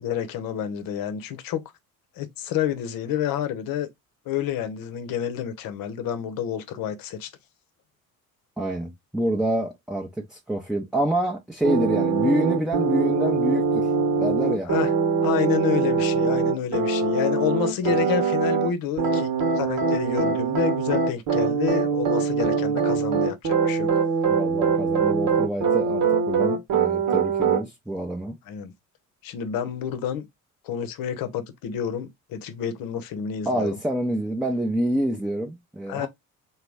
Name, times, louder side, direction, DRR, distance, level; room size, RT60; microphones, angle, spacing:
voice 1, 0.0-1.6 2.2-3.9 4.3-7.3 14.6-14.9 15.2-24.0 28.5-28.7 29.2-30.3 30.6-33.7 35.9-36.1, left 9 dB, 50° left, 0.9 m, -29 dB
voice 2, 8.6-13.9 14.2-14.7 24.3-28.4 33.5-36.1, right 1 dB, ahead, 0.7 m, -27 dB
sound 1, 11.6-18.7 19.0-27.6, right 5 dB, 45° right, 1.1 m, -23 dB
3.9 x 2.2 x 3.4 m
figure-of-eight pair, 50°, 43 cm